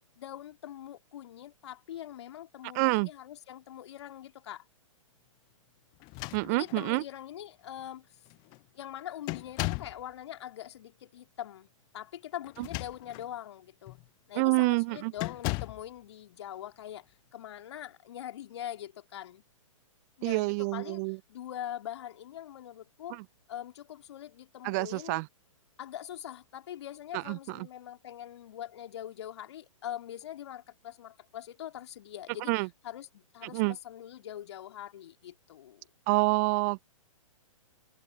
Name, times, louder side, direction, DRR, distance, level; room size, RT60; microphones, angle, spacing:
voice 1, 0.2-4.7 6.4-8.2 8.7-11.7 11.9-14.0 14.3-17.1 17.3-19.4 20.2-21.0 21.3-23.2 23.5-25.2 25.8-32.5 32.8-35.9, left 11 dB, 55° left, 2.1 m, -43 dB
voice 2, 2.7-3.1 6.3-7.0 12.6-12.7 14.3-15.1 20.2-21.2 23.1-23.2 24.6-25.3 27.1-27.7 32.5-32.7 33.4-33.8 36.1-36.8, right 28 dB, 30° right, 0.6 m, -28 dB
sound 1, 6.0-6.9 7.8-7.9 8.2-8.6 9.3-10.0 12.4-13.3 13.9-14.1 15.2-15.9, left 30 dB, 25° left, 0.5 m, -36 dB
figure-of-eight pair, 115°, 17 cm